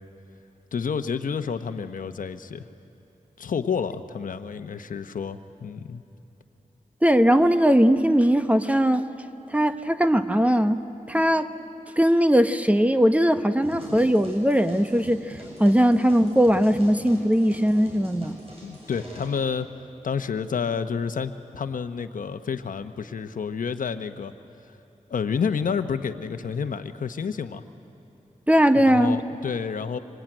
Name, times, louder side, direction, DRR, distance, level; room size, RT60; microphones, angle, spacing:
voice 1, 0.7-2.7 3.4-6.0 18.6-19.7 20.0-24.3 25.1-27.6 28.8-30.0, left 6 dB, 85° left, 9 dB, 1.0 m, -29 dB
voice 2, 7.0-9.1 9.5-10.8 11.1-11.5 12.0-15.2 15.6-18.4 28.5-29.2, equal, 10° right, 9 dB, 0.9 m, -19 dB
sound 1, 13.6-19.3, equal, 45° right, 7.3 m, -44 dB
26.0 x 25.5 x 9.0 m, 3.0 s
wide cardioid pair, 115°, 13 cm